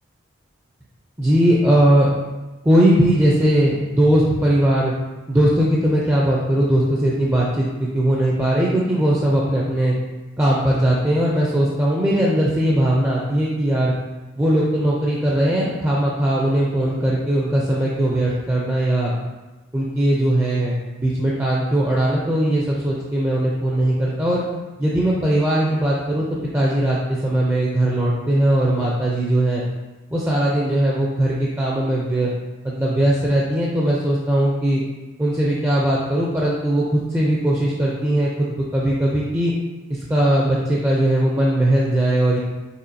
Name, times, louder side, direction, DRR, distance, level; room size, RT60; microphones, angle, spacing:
voice 1, 1.2-2.1 2.6-4.9 5.3-9.9 10.4-13.9 14.4-19.1 19.7-24.4 24.8-29.6 30.1-32.3 32.6-34.8 35.2-39.5 39.9-42.4, right 1 dB, 10° right, -5 dB, 0.4 m, -19 dB
5.5 x 3.5 x 2.6 m, 1.1 s
head